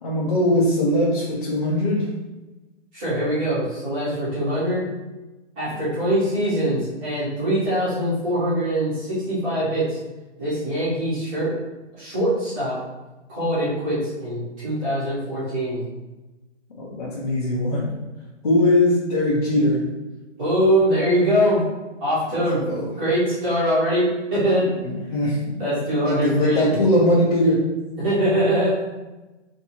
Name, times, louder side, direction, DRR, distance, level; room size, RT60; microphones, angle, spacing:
voice 1, 0.0-2.1 16.8-17.9 18.4-19.9 22.7-22.9 24.8-25.6 25.9-27.7, left 1 dB, 30° left, -8 dB, 0.7 m, -21 dB
voice 2, 2.9-4.8 5.6-10.0 10.4-11.5 12.0-12.7 13.3-15.8 20.4-21.6 22.0-24.6 25.6-26.7 28.0-28.8, equal, 10° right, -11 dB, 0.9 m, -22 dB
3.4 x 2.8 x 4.3 m, 1.1 s
hypercardioid pair, 175°, 37 cm